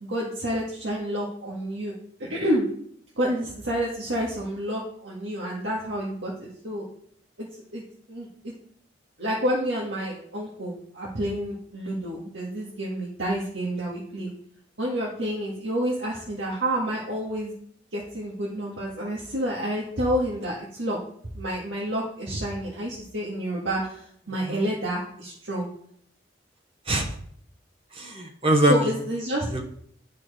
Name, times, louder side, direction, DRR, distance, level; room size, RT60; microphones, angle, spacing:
voice 1, 0.0-1.9 2.3-2.7 3.2-6.8 7.4-7.8 8.1-8.5 9.2-14.3 14.8-17.5 17.9-21.0 21.3-25.7 28.7-29.5, equal, 80° right, -5 dB, 1.8 m, -29 dB
voice 2, 26.9-27.2 27.9-29.0 29.5-29.6, right 1 dB, 30° right, 3 dB, 1.0 m, -23 dB
11.0 x 4.6 x 4.9 m, 0.66 s
head